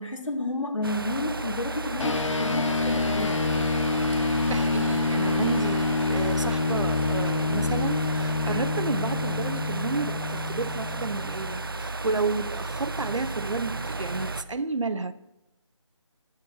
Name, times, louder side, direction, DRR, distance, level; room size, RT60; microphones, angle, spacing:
voice 1, 0.0-3.4, left 2 dB, 85° left, 2.0 m, -31 dB
sound 1, 0.8-14.4, right 3 dB, 45° right, 0.5 m, -33 dB
sound 2, 2.0-11.7, left 3 dB, 70° left, 0.6 m, -27 dB
voice 2, 4.2-15.1, right 3 dB, 70° right, 0.9 m, -31 dB
12.0 x 6.0 x 6.6 m
figure-of-eight pair, 175°, 16 cm